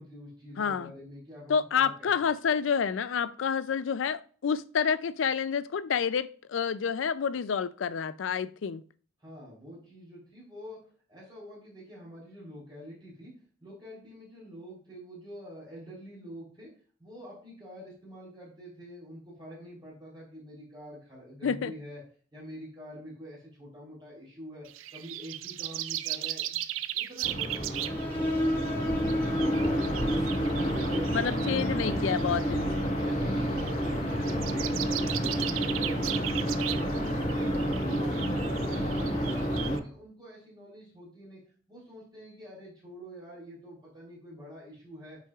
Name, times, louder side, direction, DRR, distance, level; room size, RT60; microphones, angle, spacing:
voice 1, 0.0-2.2 9.2-13.3 13.6-16.7 17.0-22.0 22.3-24.7 24.9-26.6 26.9-29.1 29.4-32.1 32.5-32.7 33.0-37.5 37.7-41.4 41.7-45.2, equal, 25° right, -5 dB, 3.5 m, -46 dB
voice 2, 0.6-0.9 1.5-8.8 21.4-21.7 31.1-32.7, left 6 dB, 75° left, 16 dB, 0.4 m, -29 dB
sound 1, 24.7-39.8, right 14 dB, 85° right, 0.4 m, -38 dB
sound 2, 27.2-39.8, equal, 40° left, 1.3 m, -30 dB
sound 3, 27.8-35.1, left 1 dB, 10° left, 1.4 m, -34 dB
9.2 x 5.8 x 2.4 m, 0.43 s
head